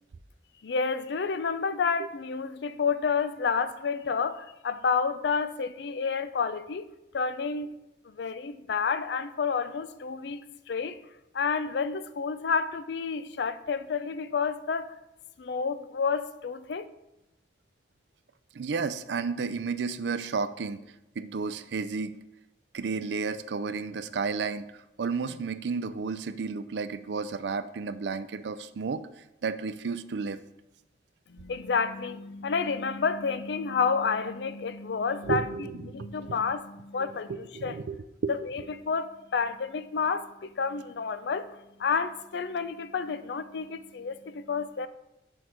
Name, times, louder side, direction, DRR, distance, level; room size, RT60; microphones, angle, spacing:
voice 1, 0.6-6.9 7.1-7.7 8.2-11.0 11.3-14.9 15.4-16.9 31.3-35.5 35.8-37.8 38.3-41.5 41.8-44.9, left 5 dB, 75° left, 0.4 m, -30 dB
voice 2, 18.5-20.8 21.2-22.2 22.7-29.0 29.4-30.4 35.2-36.4 37.0-38.7, right 5 dB, 75° right, 0.4 m, -32 dB
6.2 x 4.5 x 5.0 m
head